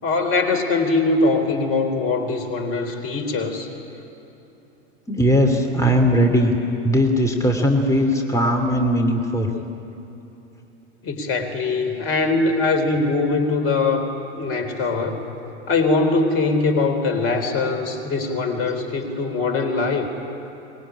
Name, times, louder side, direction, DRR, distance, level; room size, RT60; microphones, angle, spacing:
voice 1, 0.0-3.7 11.0-15.2 15.7-20.1, left 3 dB, 40° left, 7 dB, 3.7 m, -22 dB
voice 2, 5.1-6.5 6.8-9.5, equal, 10° left, 3 dB, 2.6 m, -19 dB
24.5 x 21.0 x 10.0 m, 2.9 s
figure-of-eight pair, 90°, 35 cm